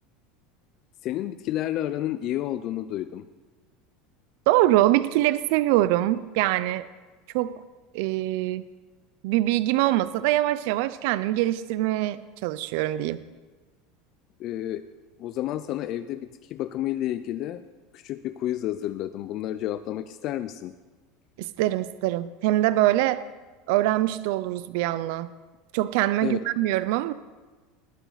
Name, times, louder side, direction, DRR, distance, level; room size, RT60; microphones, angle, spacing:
voice 1, 1.0-3.2 14.4-14.8 15.2-17.6 17.9-20.7 26.2-26.4, left 13 dB, 35° left, 12 dB, 0.3 m, -30 dB
voice 2, 4.5-6.9 7.3-7.6 7.9-8.6 9.2-13.2 21.4-23.2 23.7-25.3 25.7-27.1, right 15 dB, 55° right, 15 dB, 0.4 m, -24 dB
19.5 x 9.0 x 4.0 m, 1.3 s
supercardioid pair, 175°, 0 cm